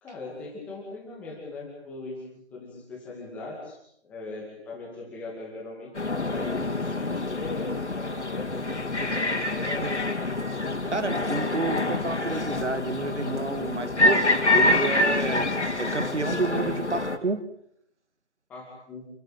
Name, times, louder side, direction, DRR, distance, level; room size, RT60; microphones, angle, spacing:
voice 1, 0.0-10.1 18.5-19.1, left 3 dB, 5° left, -2 dB, 2.3 m, -40 dB
sound 1, 6.0-17.2, left 2 dB, 80° left, 4.1 m, -26 dB
voice 2, 10.9-15.5 15.8-17.4, right 3 dB, 80° right, 11 dB, 2.5 m, -30 dB
28.5 x 15.5 x 9.1 m, 0.72 s
figure-of-eight pair, 170°, 34 cm